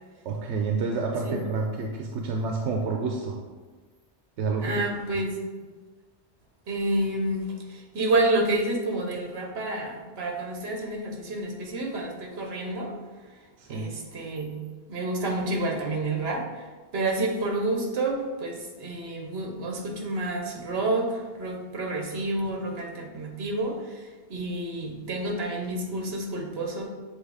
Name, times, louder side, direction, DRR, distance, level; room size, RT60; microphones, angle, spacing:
voice 1, 0.2-3.4 4.4-4.9 13.6-13.9, right 4 dB, 85° right, 1 dB, 0.9 m, -29 dB
voice 2, 4.6-5.4 6.7-13.0 13.7-26.8, right 2 dB, 65° right, 2 dB, 1.2 m, -29 dB
7.5 x 2.6 x 4.8 m, 1.4 s
omnidirectional pair, 1.2 m